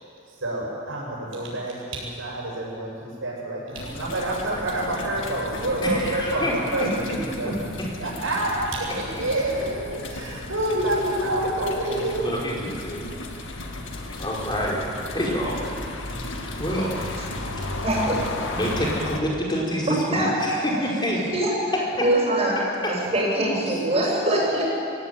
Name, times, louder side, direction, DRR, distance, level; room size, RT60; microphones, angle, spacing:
voice 1, 0.4-7.5 8.0-12.3, right 1 dB, 85° right, -3 dB, 7.8 m, -27 dB
sound 1, 3.7-19.2, left 2 dB, 70° left, 2.0 m, -34 dB
voice 2, 5.8-6.9 7.4-7.9 12.2-13.0 14.2-15.6 16.6-16.9 18.5-21.2 21.7-22.1 22.8-22.9, equal, 20° left, -3 dB, 4.8 m, -27 dB
voice 3, 17.5-18.2 19.9-20.3 21.3-21.5 22.0-22.6 22.9-24.6, right 1 dB, 30° right, -5 dB, 7.8 m, -23 dB
22.5 x 17.0 x 9.4 m, 2.5 s
head